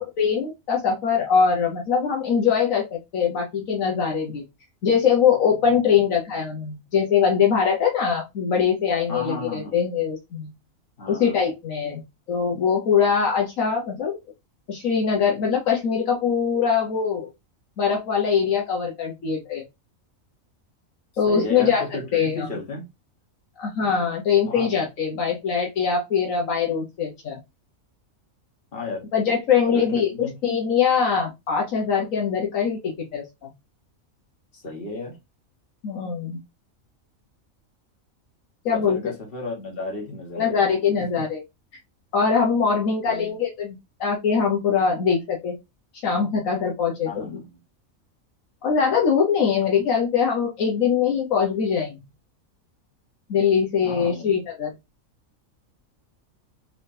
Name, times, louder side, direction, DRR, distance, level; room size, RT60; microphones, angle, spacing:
voice 1, 0.0-4.4 4.8-10.5 11.1-12.0 12.3-14.2 14.7-17.3 17.8-19.6 21.2-21.9 22.1-22.5 23.6-27.4 29.1-30.1 30.4-33.5 35.8-36.4 38.6-39.0 40.4-41.4 42.1-45.6 46.0-47.4 48.6-52.0 53.3-54.7, left 6 dB, 75° left, 1.4 m, -22 dB
voice 2, 9.1-9.8 11.0-11.5 21.3-22.8 24.5-24.7 28.7-29.0 29.7-30.3 34.5-35.2 38.7-40.6 43.0-43.3 47.0-47.5 49.6-49.8 53.8-54.3, left 2 dB, 45° left, 1.8 m, -33 dB
4.7 x 3.5 x 2.7 m
omnidirectional pair, 1.4 m